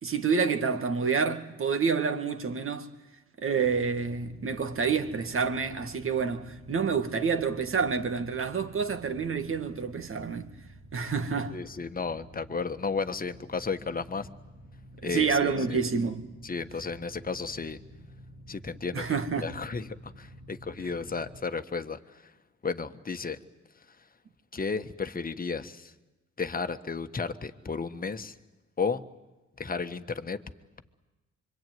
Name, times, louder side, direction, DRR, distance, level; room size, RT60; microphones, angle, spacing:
voice 1, 0.0-2.9 3.4-10.5 10.9-11.6 15.0-16.3 18.9-19.5 20.8-20.9, right 5 dB, 45° right, 2.1 m, -28 dB
sound 1, 3.6-21.4, equal, 75° right, 3.0 m, -50 dB
voice 2, 11.5-14.3 15.0-15.8 16.4-17.8 18.5-19.1 19.4-22.0 22.6-23.4 24.5-25.9 26.4-28.3 28.8-29.0 29.6-30.4, left 4 dB, 30° left, 1.5 m, -33 dB
25.5 x 24.5 x 9.4 m
cardioid pair, 85°, 29 cm